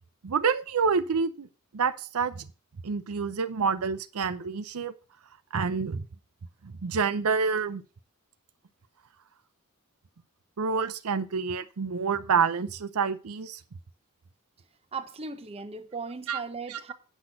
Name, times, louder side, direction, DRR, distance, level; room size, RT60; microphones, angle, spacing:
voice 1, 0.2-1.5 1.7-2.5 2.8-4.9 5.5-6.1 6.6-7.8 10.6-13.6 16.3-16.4 16.7-16.9, right 5 dB, 80° right, 0.6 m, -28 dB
voice 2, 14.9-16.9, right 4 dB, 25° right, 0.7 m, -37 dB
9.1 x 6.1 x 5.8 m
head